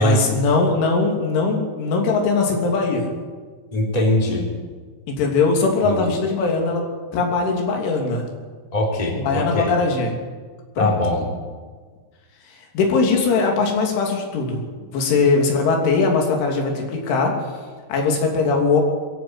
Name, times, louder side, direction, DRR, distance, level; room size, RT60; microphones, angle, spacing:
voice 1, 0.0-3.1 5.1-6.8 7.1-8.3 9.2-10.2 10.8-10.9 12.8-14.6 14.9-17.3 17.9-18.8, left 4 dB, 80° left, 1 dB, 5.4 m, -20 dB
voice 2, 3.7-4.4 5.8-6.2 8.7-9.7 10.8-11.2, left 1 dB, 10° left, -1 dB, 3.2 m, -21 dB
23.0 x 14.5 x 8.2 m, 1.5 s
omnidirectional pair, 5.4 m